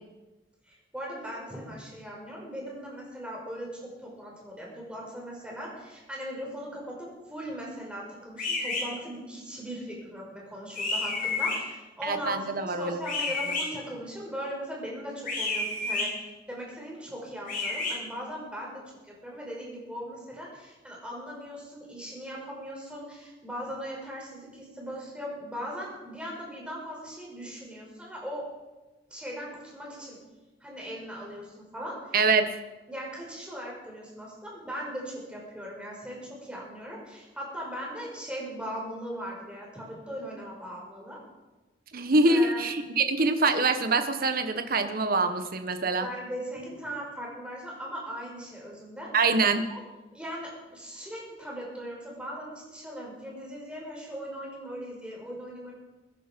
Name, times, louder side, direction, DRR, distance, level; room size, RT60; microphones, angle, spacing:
voice 1, 0.6-28.5 29.1-30.2 30.6-32.2 32.9-41.2 42.3-42.6 46.0-49.1 49.7-49.8 50.1-55.7, equal, 5° right, -3 dB, 5.5 m, -39 dB
sound 1, 8.4-8.8 10.8-11.6 13.0-13.6 15.2-16.1 17.5-17.9, left 3 dB, 50° left, 7.0 m, -29 dB
voice 2, 12.0-13.0 32.1-32.5 41.9-46.1 49.1-49.7, right 3 dB, 55° right, 8 dB, 1.3 m, -24 dB
23.5 x 10.5 x 5.3 m, 1.1 s
head